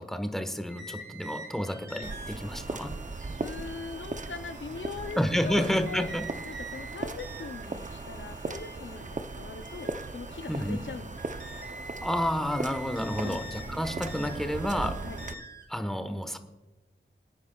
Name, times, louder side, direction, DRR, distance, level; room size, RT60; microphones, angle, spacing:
voice 1, 0.0-2.9 5.2-6.2 10.5-10.8 12.0-15.0 15.7-16.4, equal, ahead, 7 dB, 1.2 m, -30 dB
sound 1, 0.7-15.7, right 2 dB, 60° right, 2.5 m, -46 dB
sound 2, 2.0-15.3, right 3 dB, 40° right, 0.6 m, -38 dB
voice 2, 3.4-6.1 6.4-11.4 13.2-13.5 15.0-15.2, left 5 dB, 70° left, 8 dB, 0.6 m, -41 dB
25.0 x 9.5 x 2.3 m, 1.1 s
wide cardioid pair, 60°, 20 cm